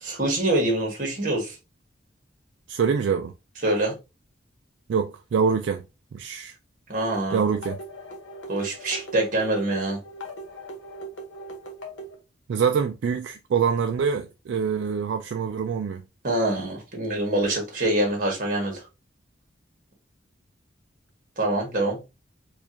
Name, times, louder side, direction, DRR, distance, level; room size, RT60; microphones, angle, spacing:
voice 1, 0.0-1.6 3.6-3.9 6.9-7.4 8.5-10.0 16.2-18.8 21.4-22.0, right 1 dB, 45° right, 1.5 m, -25 dB
voice 2, 2.7-3.3 4.9-5.8 6.1-6.5 7.3-7.8 12.5-16.0, right 6 dB, 75° right, 0.3 m, -25 dB
sound 1, 7.0-12.2, right 2 dB, 90° left, 1.1 m, -39 dB
4.6 x 2.4 x 2.8 m
head